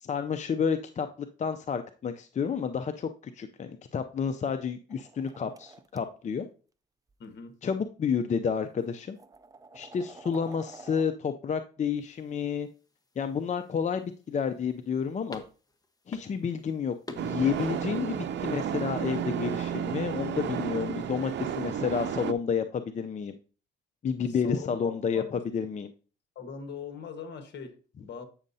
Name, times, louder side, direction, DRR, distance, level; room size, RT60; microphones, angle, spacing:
voice 1, 0.0-1.1 1.4-6.5 7.6-9.2 9.7-12.7 13.2-15.4 16.1-23.4 24.0-25.9, left 6 dB, 35° left, 0.5 m, -30 dB
sound 1, 4.9-6.0 7.1-7.3 8.2-8.3 8.8-11.1, right 3 dB, 20° right, 0.5 m, -49 dB
voice 2, 7.2-7.5 24.3-25.4 26.3-28.2, left 6 dB, 60° left, 1.3 m, -42 dB
sound 2, 12.0-19.7, left 2 dB, 20° left, 1.0 m, -51 dB
sound 3, 17.2-22.3, right 8 dB, 65° right, 0.7 m, -32 dB
8.6 x 6.4 x 2.7 m
cardioid pair, 90°, 20 cm